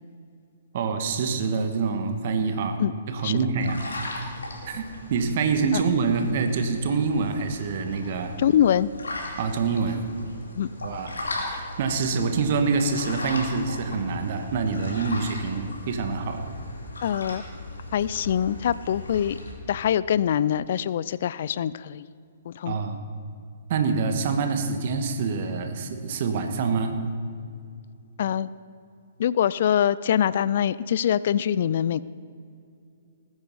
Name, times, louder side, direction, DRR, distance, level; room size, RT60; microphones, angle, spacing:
voice 1, 0.7-2.8 3.1-3.8 4.6-8.3 9.4-10.0 10.8-16.5 22.7-23.0 23.7-26.9, right 4 dB, 50° right, 7 dB, 1.5 m, -26 dB
sound 1, 3.6-19.5, left 2 dB, 80° left, 2.6 m, -38 dB
voice 2, 8.4-8.9 10.6-10.7 17.0-17.4 17.9-19.4 19.7-22.0 22.5-22.8 28.2-28.5 29.2-32.0, left 9 dB, 55° left, 18 dB, 0.3 m, -24 dB
19.5 x 9.7 x 4.2 m, 2.4 s
figure-of-eight pair, 125°, 0 cm